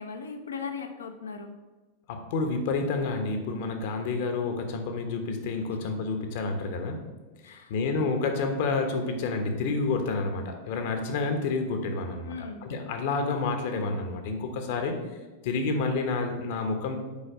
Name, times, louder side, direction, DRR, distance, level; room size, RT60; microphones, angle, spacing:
voice 1, 0.0-1.6 5.7-5.8 7.4-7.7 12.3-12.7, left 5 dB, 70° left, 6 dB, 0.8 m, -38 dB
voice 2, 2.1-7.0 7.4-15.0 15.4-17.0, left 3 dB, 50° left, 5 dB, 1.1 m, -29 dB
7.3 x 5.0 x 5.0 m, 1.2 s
figure-of-eight pair, 90°, 0 cm